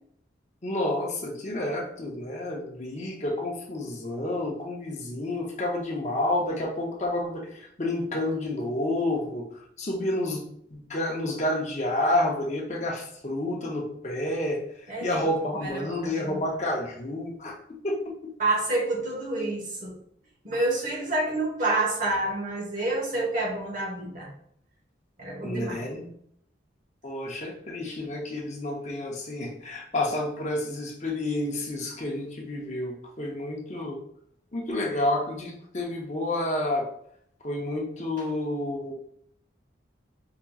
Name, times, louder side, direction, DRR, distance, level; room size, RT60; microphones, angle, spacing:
voice 1, 0.6-9.4 9.8-10.4 10.7-14.6 15.0-18.3 25.4-26.1 27.0-34.0 34.5-36.9 37.4-38.9, left 1 dB, 40° left, -1 dB, 0.6 m, -30 dB
voice 2, 14.9-15.3 15.5-16.4 18.4-19.9 20.4-24.3 25.2-25.8, right 2 dB, 45° right, -3 dB, 1.1 m, -28 dB
4.7 x 2.9 x 2.3 m, 0.67 s
head